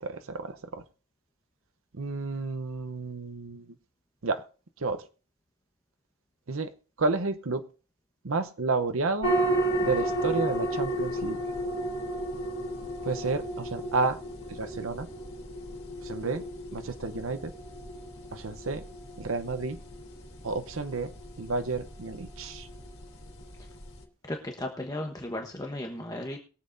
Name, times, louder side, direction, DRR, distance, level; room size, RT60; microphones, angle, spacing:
voice 1, 0.0-0.8 1.9-3.6 4.2-4.4 4.8-5.0 6.5-6.7 7.0-7.6 8.2-9.3 9.8-11.4 13.0-14.2 14.5-15.1 16.0-16.4 16.7-17.5 18.3-18.8 19.2-19.8 20.4-21.1 21.4-22.7, right 3 dB, 70° right, 10 dB, 0.8 m, -31 dB
sound 1, 9.2-24.0, right 1 dB, 70° left, 3.1 m, -33 dB
voice 2, 24.3-26.4, left 1 dB, 15° left, 1 dB, 1.1 m, -35 dB
22.5 x 7.5 x 2.6 m, 0.36 s
head